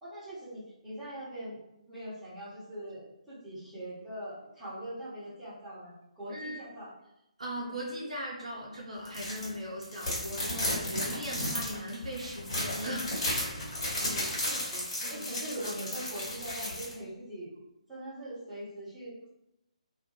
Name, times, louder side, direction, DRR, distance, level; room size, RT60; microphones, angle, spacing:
voice 1, 0.0-1.6 1.9-6.9 14.0-17.5 17.9-19.3, right 1 dB, 5° right, -13 dB, 1.0 m, -42 dB
voice 2, 6.3-6.6 7.4-13.1 15.0-15.3, equal, 60° right, -3 dB, 0.6 m, -38 dB
sound 1, 9.0-9.5 9.8-16.9, left 1 dB, 40° left, 1.0 m, -34 dB
2.2 x 2.1 x 2.9 m, 0.86 s
figure-of-eight pair, 140°, 4 cm